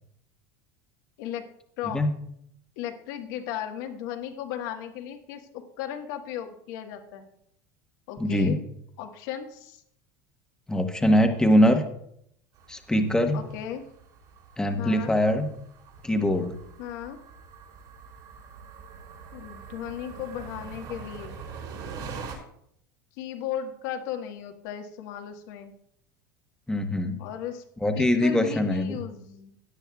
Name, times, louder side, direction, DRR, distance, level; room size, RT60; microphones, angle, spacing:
voice 1, 2.8-7.3 8.1-8.6 9.0-9.8 13.3-13.8 14.8-15.1 16.8-17.2 19.3-21.4 23.2-25.7 27.2-27.6 27.9-29.5, left 10 dB, 75° left, 5 dB, 1.4 m, -36 dB
voice 2, 8.2-8.6 10.7-11.8 12.7-13.4 14.6-15.5 16.0-16.5 26.7-27.2 27.8-29.0, equal, 5° left, 5 dB, 1.2 m, -22 dB
sound 1, 12.5-22.3, right 5 dB, 55° right, 4.6 m, -44 dB
16.5 x 9.8 x 2.3 m, 0.72 s
supercardioid pair, 125°, 10 cm